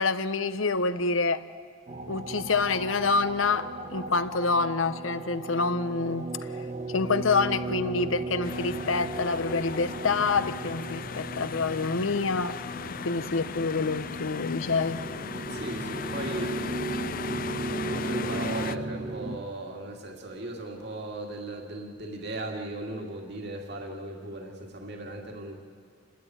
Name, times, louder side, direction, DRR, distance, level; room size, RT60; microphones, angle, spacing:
voice 1, 0.0-1.4 2.1-12.6 13.0-15.0, left 4 dB, 90° left, 12 dB, 0.9 m, -27 dB
sound 1, 1.9-19.4, right 2 dB, 35° right, 1.3 m, -36 dB
sound 2, 8.4-18.8, left 6 dB, 45° left, 0.5 m, -37 dB
voice 2, 15.5-16.6 17.3-25.6, right 2 dB, 60° right, 1 dB, 2.3 m, -37 dB
29.5 x 12.5 x 9.3 m, 2.2 s
head